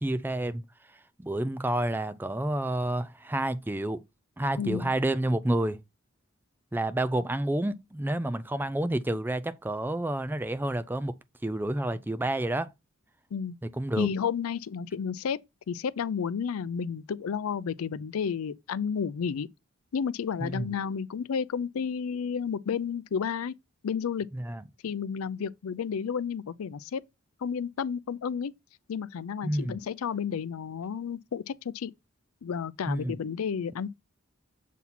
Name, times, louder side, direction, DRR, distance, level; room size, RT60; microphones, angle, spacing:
voice 1, 0.0-0.6 1.2-4.0 4.4-5.8 6.7-11.1 11.4-12.7 13.6-14.1 20.4-20.7 24.3-24.6 29.4-29.8 32.9-33.1, right 1 dB, 10° right, 0.4 m, -29 dB
voice 2, 4.6-4.9 13.3-13.6 14.0-15.4 15.7-19.5 19.9-23.5 23.8-24.3 24.8-27.0 27.4-28.5 28.9-31.9 32.4-33.9, left 6 dB, 90° left, 0.4 m, -31 dB
7.1 x 4.2 x 4.1 m
head